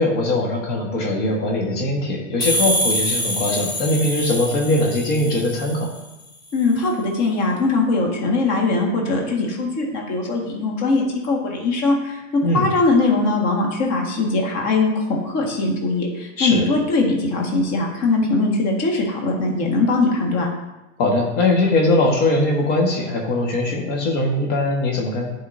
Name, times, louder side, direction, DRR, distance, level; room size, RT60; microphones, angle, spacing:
voice 1, 0.0-5.9 12.4-12.7 16.4-16.6 21.0-25.3, left 2 dB, 65° left, -1 dB, 1.6 m, -21 dB
sound 1, 2.4-6.0, equal, 10° left, 0.5 m, -25 dB
voice 2, 6.5-12.2 12.5-20.5, left 3 dB, 40° left, -1 dB, 1.8 m, -21 dB
11.0 x 5.1 x 2.7 m, 1.0 s
supercardioid pair, 135°, 38 cm